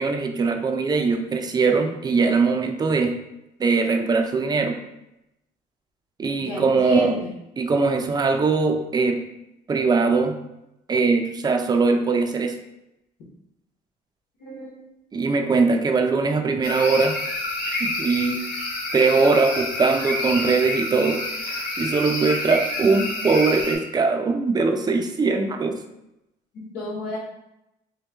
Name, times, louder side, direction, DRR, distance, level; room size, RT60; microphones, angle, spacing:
voice 1, 0.0-3.2 3.6-4.7 6.2-7.2 7.6-9.3 9.7-10.4 10.9-12.5 15.1-17.2 17.7-18.4 18.9-25.8, right 4 dB, 25° right, 5 dB, 0.4 m, -21 dB
voice 2, 6.2-7.3 14.4-14.7 26.5-27.2, left 1 dB, 90° left, -6 dB, 1.2 m, -31 dB
sound 1, 16.6-23.8, left 2 dB, 60° left, 1.1 m, -28 dB
3.1 x 3.0 x 3.5 m, 0.88 s
cardioid pair, 110°, 17 cm